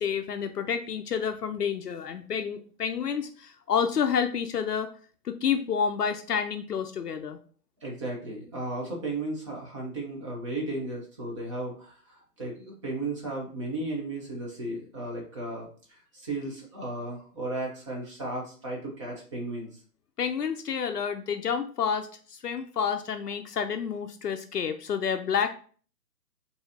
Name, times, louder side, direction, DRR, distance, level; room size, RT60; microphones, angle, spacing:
voice 1, 0.0-4.9 5.2-7.4 20.2-25.5, left 7 dB, 75° left, 7 dB, 0.6 m, -29 dB
voice 2, 7.8-19.7, right 2 dB, 20° right, -2 dB, 0.8 m, -35 dB
5.5 x 2.8 x 2.7 m, 0.43 s
figure-of-eight pair, 140°, 48 cm